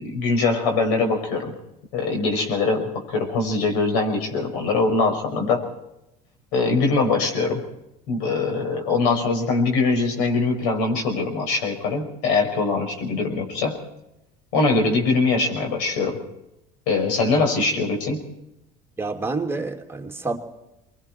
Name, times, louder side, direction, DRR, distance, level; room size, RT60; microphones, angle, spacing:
voice 1, 0.0-1.5 1.9-5.7 6.5-7.6 8.1-13.8 14.5-16.2 16.9-18.3, left 3 dB, 75° left, 3 dB, 6.0 m, -22 dB
voice 2, 19.0-20.4, right 3 dB, 10° right, 1 dB, 2.9 m, -28 dB
25.5 x 22.5 x 4.6 m, 0.90 s
supercardioid pair, 90°, 20 cm